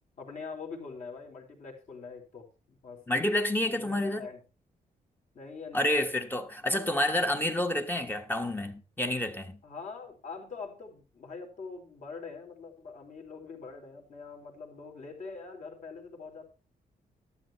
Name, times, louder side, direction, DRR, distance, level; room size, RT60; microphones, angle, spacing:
voice 1, 0.2-3.0 3.7-4.4 5.3-6.1 6.6-6.9 9.6-16.4, left 4 dB, 55° left, 4.1 m, -44 dB
voice 2, 3.1-4.3 5.7-9.6, left 1 dB, 15° left, 1.2 m, -29 dB
12.5 x 12.0 x 3.1 m
cardioid pair, 120°, 15 cm